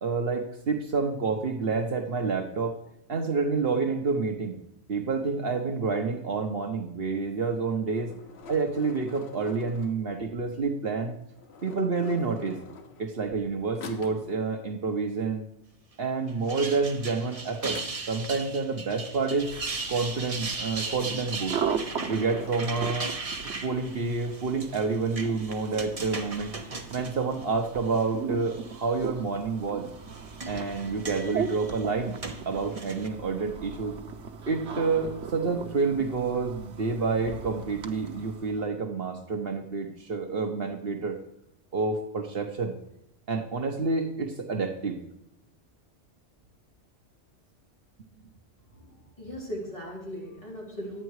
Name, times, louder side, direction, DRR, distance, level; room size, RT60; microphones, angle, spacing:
voice 1, 0.0-2.8 3.1-4.6 4.9-8.1 8.5-11.2 11.6-12.6 13.0-15.4 16.0-17.8 18.1-19.5 19.9-21.6 22.1-23.1 23.6-26.5 26.9-29.9 30.5-32.2 32.5-33.9 34.5-41.2 41.7-42.7 43.3-45.0, right 4 dB, 60° right, 5 dB, 1.2 m, -28 dB
sound 1, 7.6-10.4 11.3-13.5 13.8-14.4 17.5-18.5 20.8-21.0 21.3-22.9, left 4 dB, 70° left, 1.3 m, -46 dB
sound 2, 16.3-28.0 28.5-29.1 29.9-33.1, right 3 dB, 35° right, 1.0 m, -38 dB
sound 3, 19.4-38.7, right 6 dB, 85° right, 1.2 m, -38 dB
voice 2, 48.7-51.0, equal, 30° left, -5 dB, 4.2 m, -38 dB
11.5 x 9.0 x 4.7 m, 0.79 s
omnidirectional pair, 1.2 m